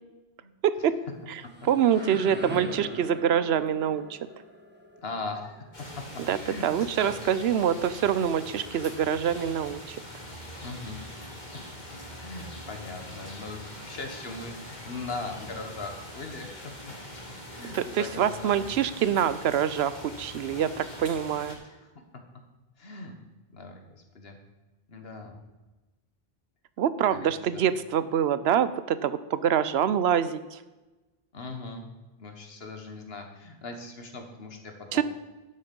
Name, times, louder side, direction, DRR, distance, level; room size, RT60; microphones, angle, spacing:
voice 1, 0.6-1.0 1.6-4.2 6.3-6.4 6.6-10.0 17.7-21.6 26.8-30.6 34.9-35.0, right 9 dB, 90° right, 14 dB, 0.9 m, -25 dB
sound 1, 1.1-6.9, right 1 dB, 10° right, 1.2 m, -43 dB
voice 2, 5.0-5.7 6.0-7.1 10.6-11.6 12.2-17.2 17.5-18.7 21.7-22.2 22.8-23.1 23.5-23.8 24.2-24.4 24.9-25.4 27.1-27.6 31.3-31.9 32.2-35.0, left 3 dB, 75° left, 4 dB, 1.6 m, -40 dB
sound 2, 5.7-21.5, left 1 dB, 45° left, 2.0 m, -43 dB
12.0 x 6.6 x 5.3 m, 1.1 s
omnidirectional pair, 1.0 m